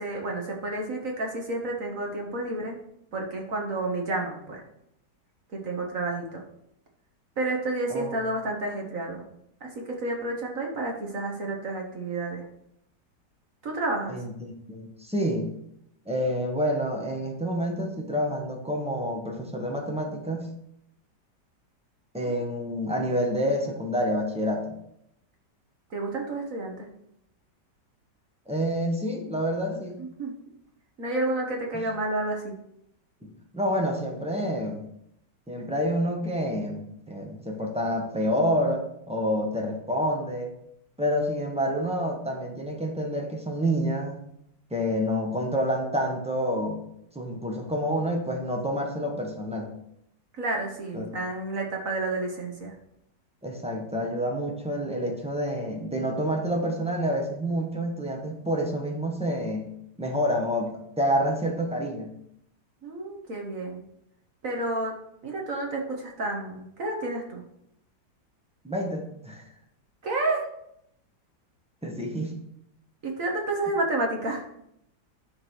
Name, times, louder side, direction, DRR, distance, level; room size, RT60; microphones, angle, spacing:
voice 1, 0.0-2.8 3.1-4.6 5.5-6.4 7.4-9.3 9.6-12.4 13.6-14.2 22.2-22.4 25.9-26.9 30.0-30.3 31.0-32.5 50.4-52.7 62.8-63.8 64.4-65.0 65.2-67.4 70.0-70.4 73.0-74.4, right 2 dB, 50° right, 1 dB, 1.8 m, -30 dB
voice 2, 14.1-15.5 16.0-20.5 22.1-24.8 28.5-30.0 31.7-31.9 33.2-34.9 35.5-40.5 41.0-44.2 44.7-46.8 47.1-49.7 50.9-51.0 53.4-59.7 60.0-62.1 68.6-69.4 71.8-72.3, equal, 5° right, 1 dB, 1.3 m, -28 dB
10.5 x 3.8 x 6.4 m, 0.75 s
omnidirectional pair, 1.9 m